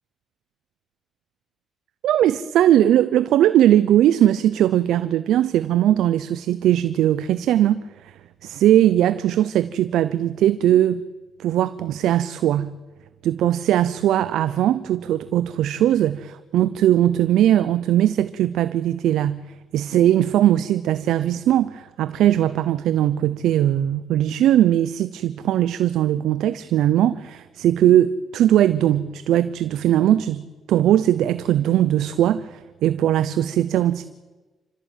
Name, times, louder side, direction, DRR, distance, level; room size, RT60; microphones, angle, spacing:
voice 1, 2.0-11.0 11.4-12.7 13.2-19.4 19.7-34.0, right 12 dB, 80° right, 14 dB, 0.7 m, -19 dB
27.5 x 14.0 x 9.2 m, 1.2 s
cardioid pair, 90°, 0 cm